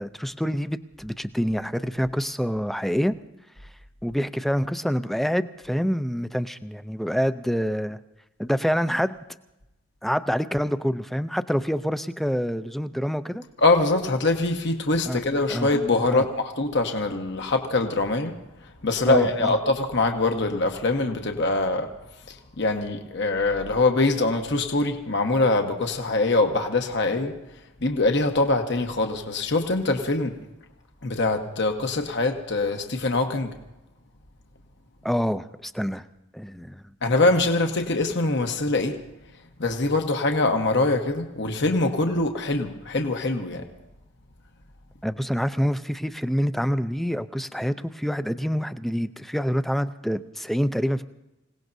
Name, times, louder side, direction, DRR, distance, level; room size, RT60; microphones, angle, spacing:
voice 1, 0.0-3.1 4.0-8.0 8.4-9.2 10.0-13.4 15.1-15.2 15.5-15.7 16.1-16.3 19.1-19.6 35.0-36.0 36.3-36.8 45.0-51.0, equal, ahead, 11 dB, 0.4 m, -26 dB
voice 2, 13.6-18.3 18.8-21.9 22.6-27.3 27.8-30.4 31.0-33.5 37.0-39.0 39.6-43.7, left 2 dB, 60° left, 4 dB, 1.2 m, -23 dB
27.0 x 17.5 x 2.7 m, 0.96 s
head